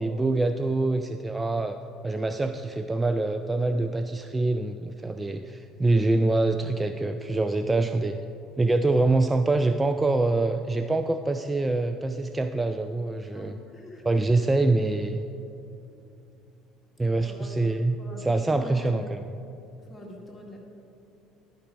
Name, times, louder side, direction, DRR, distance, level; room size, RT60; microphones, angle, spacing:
voice 1, 0.0-1.8 2.0-8.2 8.6-13.6 14.0-15.2 17.0-19.2, right 2 dB, 15° right, 8 dB, 0.3 m, -25 dB
voice 2, 13.3-14.0 17.2-17.7 18.0-19.3 19.9-20.6, left 1 dB, 15° left, -2 dB, 2.0 m, -43 dB
11.0 x 5.2 x 4.5 m, 2.8 s
hypercardioid pair, 70°, 0 cm